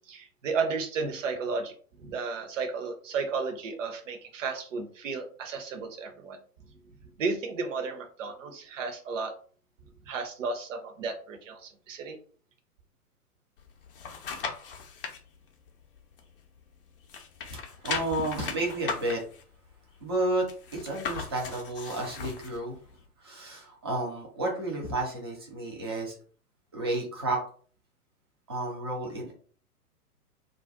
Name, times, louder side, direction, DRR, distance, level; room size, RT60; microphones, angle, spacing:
voice 1, 0.1-1.7 2.0-6.4 7.2-9.3 10.1-12.2, right 4 dB, 55° right, 4 dB, 0.7 m, -33 dB
sound 1, 13.6-15.2 15.7-16.8 17.0-22.6 23.0-23.1, left 5 dB, 40° left, 0.5 m, -38 dB
voice 2, 17.5-19.2 20.0-20.5 20.7-22.8 23.2-26.1 26.7-27.4 28.5-29.3, right 2 dB, 20° right, -1 dB, 0.3 m, -31 dB
2.4 x 2.1 x 3.5 m, 0.44 s
figure-of-eight pair, 115°, 46 cm